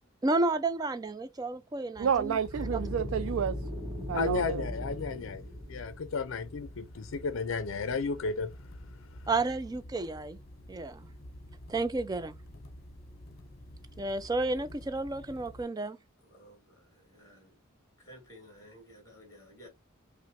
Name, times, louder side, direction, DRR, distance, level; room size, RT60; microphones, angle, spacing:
voice 1, 0.2-2.4 9.3-10.4 10.7-11.0 11.7-12.3 14.0-16.0, right 2 dB, 20° right, 0.4 m, -31 dB
sound 1, 2.0-15.7, equal, 50° left, 1.0 m, -49 dB
voice 2, 2.0-3.6 4.1-4.6, right 7 dB, 90° right, 0.3 m, -30 dB
sound 2, 2.5-6.5, left 1 dB, 5° right, 2.1 m, -38 dB
voice 3, 4.1-5.4 5.7-9.3, left 4 dB, 75° left, 0.5 m, -34 dB
voice 4, 16.2-17.6 18.0-19.7, equal, 15° left, 2.2 m, -54 dB
5.6 x 2.1 x 3.0 m
head